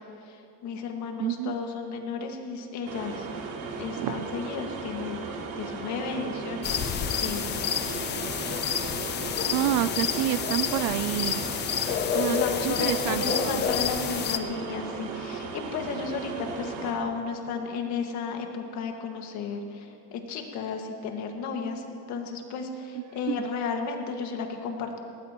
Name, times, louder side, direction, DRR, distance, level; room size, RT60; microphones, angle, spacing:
voice 1, 0.2-3.3 3.8-7.9 12.3-25.0, left 5 dB, 55° left, 3 dB, 1.9 m, -34 dB
voice 2, 1.2-1.5 4.0-4.1 9.5-11.4 12.1-13.6 23.3-23.5, right 13 dB, 60° right, 16 dB, 0.5 m, -28 dB
sound 1, 2.8-16.9, right 4 dB, 85° right, 2.5 m, -37 dB
sound 2, 6.6-14.4, left 8 dB, 30° left, 0.6 m, -29 dB
20.5 x 18.5 x 3.0 m, 2.3 s
cardioid pair, 155°, 34 cm